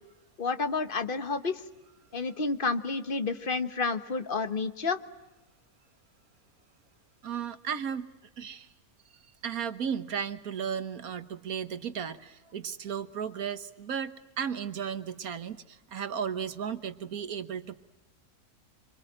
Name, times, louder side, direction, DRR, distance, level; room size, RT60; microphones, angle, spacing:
voice 1, 0.4-1.6 2.1-5.0, left 4 dB, 35° left, 10 dB, 1.3 m, -30 dB
voice 2, 7.2-8.1 8.4-8.7 9.4-17.8, right 7 dB, 65° right, 11 dB, 1.6 m, -35 dB
26.5 x 25.0 x 8.8 m, 1.0 s
omnidirectional pair, 1.6 m